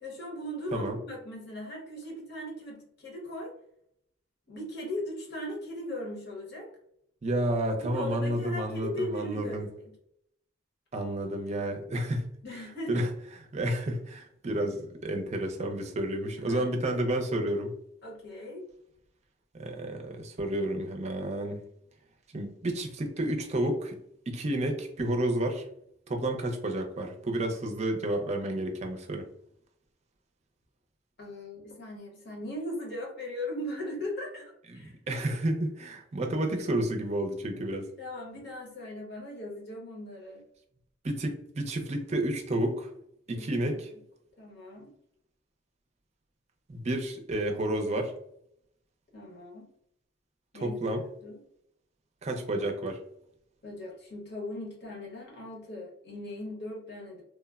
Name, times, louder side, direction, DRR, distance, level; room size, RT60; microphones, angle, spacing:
voice 1, 0.0-3.5 4.5-6.7 7.8-9.9 12.4-13.0 16.4-16.6 18.0-18.6 31.2-34.9 38.0-40.4 43.3-44.0 44.4-44.9 49.1-49.7 50.5-51.4 53.6-57.2, left 1 dB, 60° left, -1 dB, 0.9 m, -38 dB
voice 2, 7.2-9.7 10.9-12.3 12.9-13.1 13.5-17.7 19.5-21.6 22.3-24.0 24.3-25.6 26.1-29.3 34.7-37.9 41.0-42.9 43.3-43.9 46.7-48.1 50.6-51.0 52.2-53.0, right 1 dB, 35° right, 4 dB, 0.5 m, -30 dB
3.2 x 2.0 x 2.3 m, 0.71 s
head